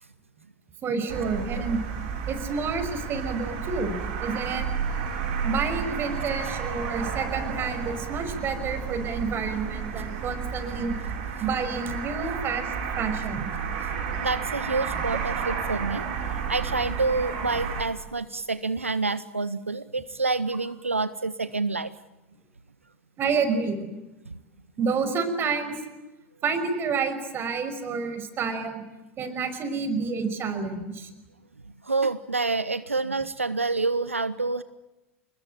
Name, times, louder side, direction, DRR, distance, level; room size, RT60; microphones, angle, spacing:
voice 1, 0.8-1.8 2.3-4.7 5.4-10.9 11.4-12.7 13.0-13.5 15.1-15.2 23.2-23.9 24.8-25.8 26.4-28.8 29.2-31.1, right 5 dB, 35° right, 9 dB, 5.9 m, -29 dB
sound 1, 1.1-17.8, right 6 dB, 55° right, 7.0 m, -32 dB
voice 2, 14.2-16.2 16.5-21.9 31.9-34.6, right 3 dB, 90° right, 15 dB, 0.8 m, -28 dB
29.0 x 20.5 x 9.1 m, 1.1 s
figure-of-eight pair, 85°, 7 cm